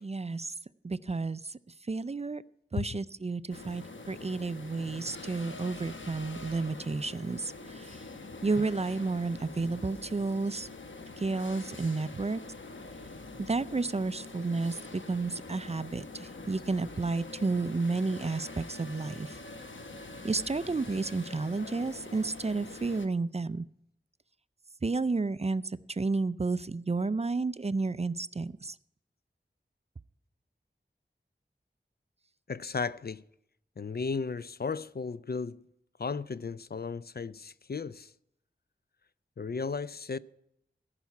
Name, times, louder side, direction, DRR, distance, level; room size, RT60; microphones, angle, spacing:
voice 1, 0.0-0.5 0.8-1.6 1.9-2.4 2.7-8.0 8.4-10.7 11.2-12.4 13.4-19.4 20.2-23.7 24.8-28.8, right 3 dB, 30° right, 0.4 m, -31 dB
sound 1, 3.5-23.1, left 3 dB, 75° left, 1.0 m, -45 dB
voice 2, 32.5-33.2 33.8-35.6 36.0-38.1 39.4-40.2, left 5 dB, 50° left, 0.4 m, -35 dB
15.0 x 5.8 x 8.2 m
wide cardioid pair, 40°, 20 cm